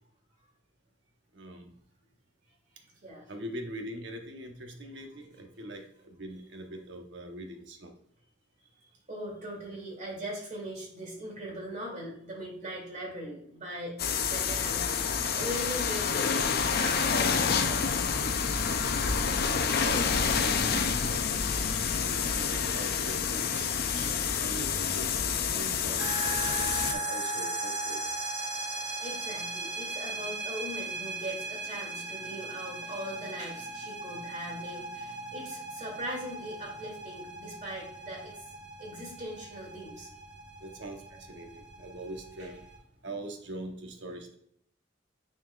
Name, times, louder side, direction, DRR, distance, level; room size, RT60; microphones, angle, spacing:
voice 1, 1.3-1.7 3.3-7.9 19.8-21.7 22.0-25.1 25.5-26.6 26.9-28.0 40.6-42.6 43.0-44.4, right 1 dB, 70° right, 3 dB, 1.1 m, -42 dB
voice 2, 9.1-18.1 29.0-38.3 38.8-40.1 42.4-42.5, equal, 40° right, -2 dB, 2.7 m, -40 dB
sound 1, 14.0-26.9, left 6 dB, 55° left, 0.5 m, -28 dB
sound 2, 26.0-42.8, right 2 dB, 10° right, 1.3 m, -38 dB
9.3 x 4.4 x 2.4 m, 0.68 s
head